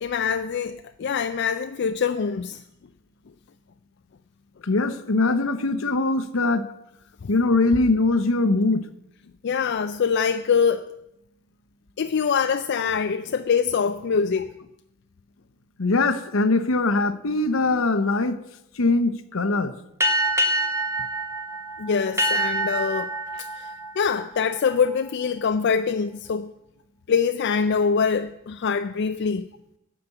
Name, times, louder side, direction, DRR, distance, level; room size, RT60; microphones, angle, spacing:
voice 1, 0.0-2.6 9.4-10.9 12.0-14.5 21.8-26.5 27.1-29.5, left 6 dB, 55° left, 0.4 m, -24 dB
voice 2, 4.6-6.7 7.3-8.8 15.8-18.4 18.8-19.7, left 3 dB, 75° left, 0.9 m, -22 dB
sound 1, 20.0-25.1, right 1 dB, 15° right, 1.2 m, -26 dB
12.5 x 5.2 x 8.2 m
head